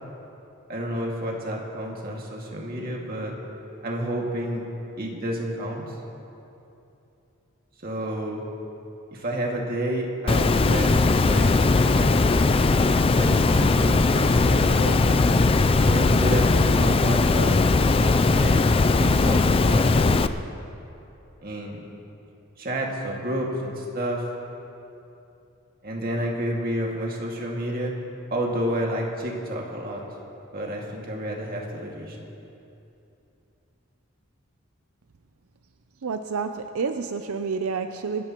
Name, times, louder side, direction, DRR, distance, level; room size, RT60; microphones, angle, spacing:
voice 1, 0.7-3.3 3.8-4.7 5.0-6.0 7.8-8.4 9.1-12.3 13.2-15.0 15.8-17.6 18.3-20.3 21.4-21.9 22.6-24.3 25.8-27.9 28.3-30.0 30.5-32.3, right 1 dB, 45° right, -1 dB, 2.1 m, -30 dB
Water, 10.3-20.3, left 3 dB, 25° left, 0.3 m, -19 dB
voice 2, 36.0-38.2, right 5 dB, 80° right, 7 dB, 0.5 m, -29 dB
27.0 x 13.5 x 3.0 m, 2.9 s
head